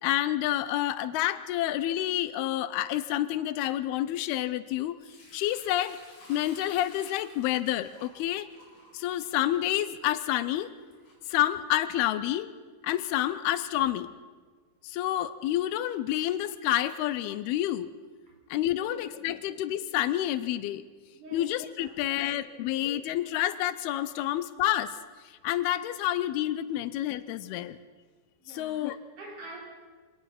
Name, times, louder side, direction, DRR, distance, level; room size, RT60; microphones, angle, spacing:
voice 1, 0.0-5.0 5.3-6.0 6.3-8.5 8.9-10.7 11.3-12.5 12.8-14.1 14.8-17.9 18.5-20.8 21.3-24.9 25.4-27.8 28.5-29.0, left 13 dB, 90° left, 14 dB, 2.8 m, -29 dB
Sink (filling or washing) / Liquid, 5.0-11.9, left 1 dB, 50° left, 6.5 m, -55 dB
voice 2, 18.8-19.4 21.1-21.5 21.8-22.7 24.2-24.3 28.4-29.6, right 1 dB, 55° right, -1 dB, 5.4 m, -48 dB
24.5 x 19.0 x 5.9 m, 1.4 s
omnidirectional pair, 4.5 m